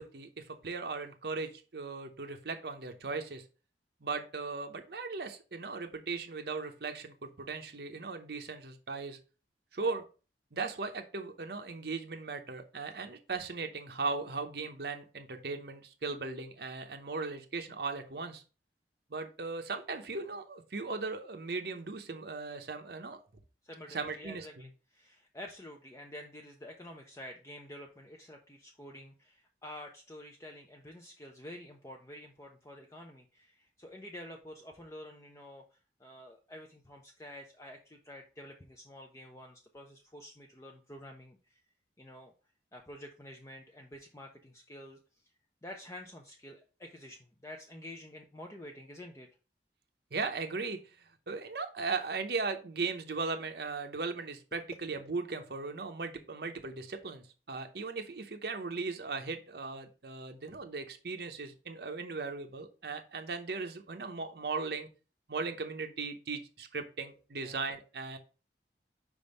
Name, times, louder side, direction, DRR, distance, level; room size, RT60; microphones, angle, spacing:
voice 1, 0.0-3.4 4.0-9.2 9.7-10.0 10.5-18.4 19.1-23.2 23.9-24.7 50.1-50.8 51.3-64.9 65.3-68.2, right 4 dB, 65° right, 5 dB, 0.8 m, -38 dB
voice 2, 23.6-35.6 36.0-41.6 42.0-42.3 42.7-45.0 45.6-49.3 67.4-67.6, left 1 dB, 15° left, 2 dB, 0.5 m, -49 dB
5.2 x 3.5 x 5.2 m, 0.35 s
head